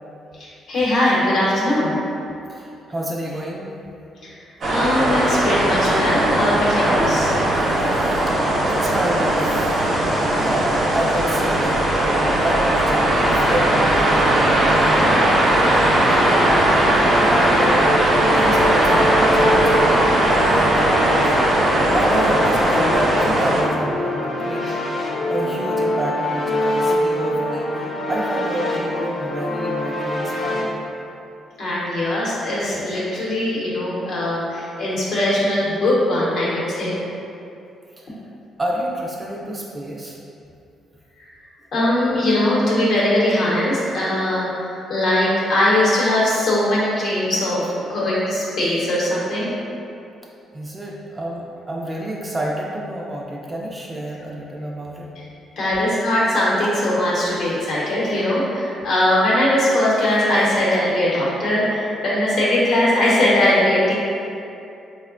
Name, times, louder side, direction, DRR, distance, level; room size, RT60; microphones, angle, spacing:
voice 1, 0.4-2.0 4.2-4.3 4.7-7.3 24.7-24.8 31.6-37.0 41.2-41.3 41.7-49.5 55.6-63.9, left 1 dB, 70° left, -7 dB, 0.8 m, -20 dB
voice 2, 2.5-3.7 7.9-8.4 8.7-9.8 10.4-17.9 18.3-20.0 20.5-21.4 21.9-30.9 38.0-38.1 38.6-40.2 50.5-55.1, right 1 dB, 25° right, -3 dB, 0.3 m, -29 dB
sound 1, 4.6-23.6, right 1 dB, 60° right, 0.7 m, -18 dB
sound 2, 15.8-30.6, left 1 dB, 40° left, 0.4 m, -24 dB
3.4 x 2.1 x 2.4 m, 2.7 s
cardioid pair, 90°, 0 cm